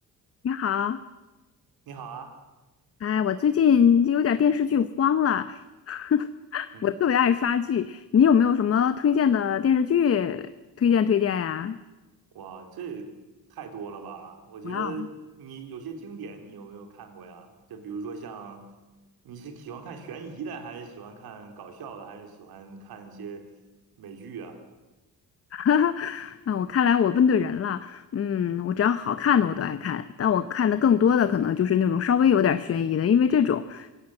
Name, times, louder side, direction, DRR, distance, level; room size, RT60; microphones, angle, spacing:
voice 1, 0.4-1.0 3.0-5.6 5.9-6.3 6.5-10.5 10.8-11.8 14.6-14.9 25.5-33.9, left 8 dB, 40° left, 12 dB, 0.8 m, -22 dB
voice 2, 1.9-2.3 6.7-6.9 12.3-13.1 13.5-18.7 19.2-23.5 24.0-24.6, right 5 dB, 80° right, 5 dB, 3.5 m, -40 dB
25.5 x 17.5 x 7.8 m, 1.1 s
cardioid pair, 135°, 36 cm